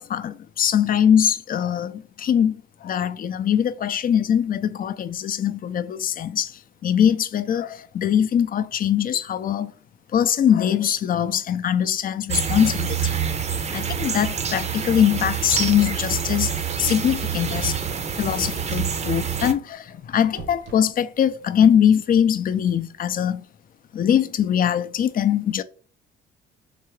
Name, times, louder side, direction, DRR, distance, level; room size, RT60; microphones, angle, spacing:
voice 1, 0.0-9.7 10.1-13.2 13.7-16.5 16.8-17.8 18.1-23.4 23.9-25.6, left 9 dB, 45° left, 0.4 m, -22 dB
sound 1, 12.3-19.5, right 7 dB, 35° right, 0.6 m, -26 dB
sound 2, 19.3-21.4, right 4 dB, 75° right, 0.8 m, -48 dB
3.7 x 3.3 x 3.1 m
cardioid pair, 90°, 20 cm